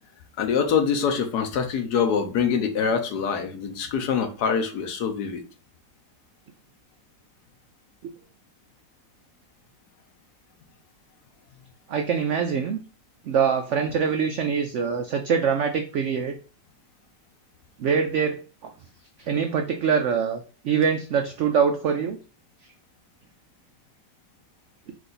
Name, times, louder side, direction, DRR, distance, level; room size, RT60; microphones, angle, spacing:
voice 1, 0.4-5.4, left 6 dB, 70° left, 1.3 m, -24 dB
voice 2, 11.9-12.8 13.3-16.4 17.8-18.7 19.2-22.2, right 6 dB, 90° right, 0.6 m, -24 dB
4.8 x 2.6 x 3.9 m
omnidirectional pair, 1.8 m